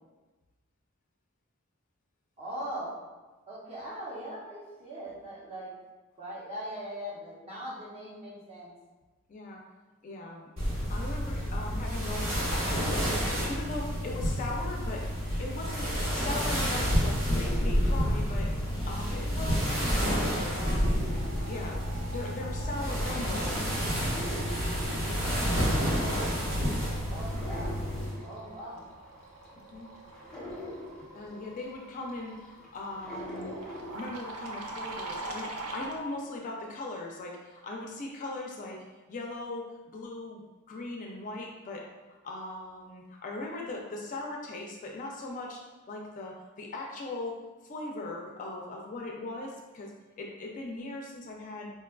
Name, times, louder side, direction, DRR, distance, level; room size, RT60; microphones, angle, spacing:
voice 1, 2.4-3.0 3.5-5.7 6.2-8.7 25.8-26.4 27.0-27.8 28.2-28.8, right 1 dB, 30° right, -6 dB, 0.8 m, -40 dB
voice 2, 9.3-9.6 10.0-10.5 10.9-15.1 15.4-18.5 18.8-21.0 21.5-23.7 29.5-29.9 31.0-33.5 33.9-38.8 39.1-40.4 40.7-41.8 42.2-45.6 45.9-49.9 50.2-51.7, left 2 dB, 35° left, 0 dB, 0.3 m, -39 dB
sound 1, 10.6-28.1, equal, 65° right, 1.1 m, -29 dB
sound 2, 17.2-19.4 19.8-34.9 35.3-35.9, equal, 5° left, 0.8 m, -44 dB
sound 3, 21.1-36.0, right 2 dB, 80° right, 0.5 m, -45 dB
4.3 x 2.3 x 2.2 m, 1.2 s
head